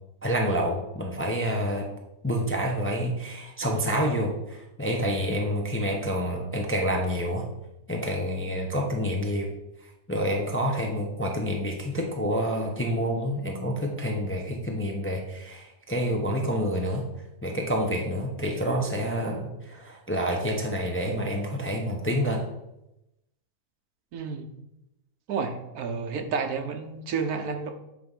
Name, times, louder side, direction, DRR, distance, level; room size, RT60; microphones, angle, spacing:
voice 1, 0.2-1.9 2.2-7.5 7.9-9.5 10.1-17.0 17.4-22.4, equal, 10° left, 1 dB, 0.6 m, -28 dB
voice 2, 24.1-24.5 25.3-27.7, right 5 dB, 75° right, 5 dB, 1.4 m, -30 dB
8.5 x 3.4 x 5.4 m, 0.89 s
omnidirectional pair, 1.6 m